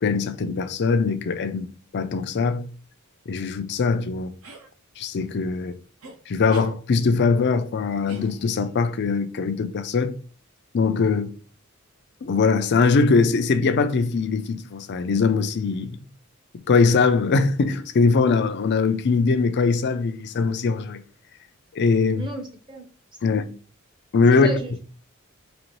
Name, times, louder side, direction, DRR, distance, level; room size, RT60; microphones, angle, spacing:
voice 1, 0.0-1.7 1.9-2.6 3.3-4.3 5.0-5.7 6.3-10.1 10.7-11.3 12.2-16.0 16.5-21.0 21.7-22.2 23.2-23.4 24.1-24.5, left 4 dB, 50° left, 0.4 m, -21 dB
sound 1, 4.4-4.7 6.0-6.2 6.5-6.8 8.1-8.7, right 2 dB, 70° right, 0.8 m, -41 dB
voice 2, 22.2-22.9 23.2-23.6 24.3-24.8, equal, 20° right, 0.7 m, -34 dB
4.0 x 2.9 x 3.0 m
head